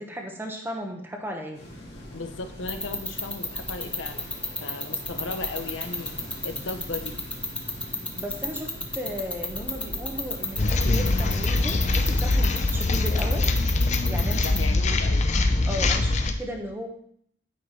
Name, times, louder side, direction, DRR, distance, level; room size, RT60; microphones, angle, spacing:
voice 1, 0.0-1.6 7.8-13.5 14.1-14.5 15.7-16.9, equal, 10° right, 2 dB, 1.1 m, -35 dB
sound 1, 1.5-13.3, left 1 dB, 55° left, 2.7 m, -42 dB
voice 2, 2.1-6.2 6.4-7.1 14.4-15.3, left 3 dB, 90° left, 7 dB, 0.9 m, -36 dB
sound 2, 2.7-14.6, left 2 dB, 5° left, 0.8 m, -30 dB
sound 3, 10.6-16.3, left 2 dB, 35° left, 0.6 m, -23 dB
9.8 x 5.4 x 4.3 m, 0.67 s
head